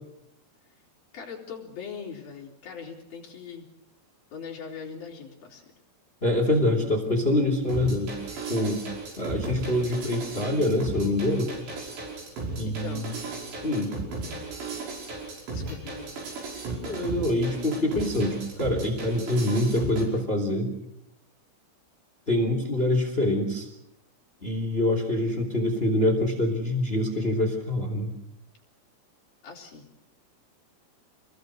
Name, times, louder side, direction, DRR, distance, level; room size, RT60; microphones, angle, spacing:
voice 1, 1.1-3.7 4.3-5.7 12.7-13.1 15.5-16.3 29.4-29.9, left 6 dB, 55° left, -1 dB, 5.4 m, -41 dB
voice 2, 6.2-8.2 8.5-8.9 9.2-11.5 12.6-13.1 13.6-14.0 16.8-20.7 22.3-23.7 24.4-28.1, left 1 dB, 15° left, 3 dB, 2.7 m, -25 dB
sound 1, 7.7-20.1, right 3 dB, 70° right, 7.9 m, -35 dB
28.0 x 20.5 x 6.5 m, 0.81 s
omnidirectional pair, 5.2 m